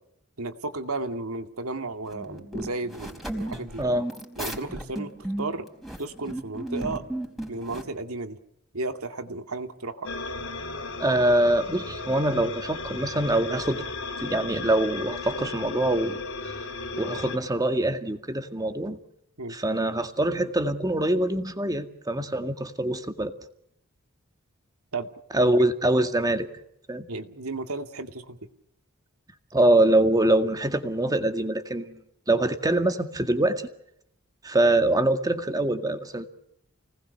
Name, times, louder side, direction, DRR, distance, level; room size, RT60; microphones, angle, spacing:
voice 1, 0.4-3.8 4.4-5.1 5.4-5.6 6.0-7.0 7.5-8.4 8.7-10.1 19.4-19.6 24.9-25.1 25.3-25.6 27.1-28.4, right 3 dB, 85° right, 6 dB, 2.4 m, -33 dB
sound 1, 2.1-7.8, right 1 dB, ahead, 4.3 m, -34 dB
voice 2, 3.8-4.1 11.0-13.8 14.2-16.2 16.4-16.6 17.0-19.0 19.5-23.3 25.3-26.5 26.9-27.1 29.5-32.0 32.3-33.7 34.4-36.3, right 1 dB, 15° right, 7 dB, 2.0 m, -24 dB
sound 2, 10.0-17.4, left 3 dB, 65° left, 3.6 m, -35 dB
29.5 x 19.5 x 6.7 m, 0.76 s
head